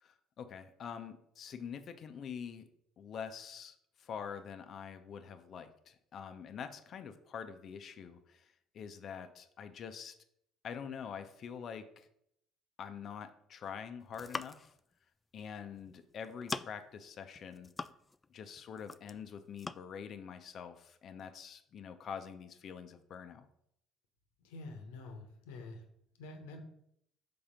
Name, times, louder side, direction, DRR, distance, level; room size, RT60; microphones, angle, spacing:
voice 1, 0.0-2.7 3.0-10.1 10.6-12.1 12.8-14.7 15.3-17.7 18.3-23.5, left 7 dB, 55° left, 9 dB, 0.7 m, -45 dB
sound 1, 14.0-14.8 15.8-16.0 16.2-16.9 17.4-18.3 18.6-19.2 19.6-19.8, left 3 dB, 25° left, 0.3 m, -42 dB
voice 2, 24.4-25.8 26.2-26.6, left 2 dB, 80° left, 4 dB, 1.1 m, -47 dB
5.6 x 3.9 x 5.1 m, 0.72 s
hypercardioid pair, 65°, 0 cm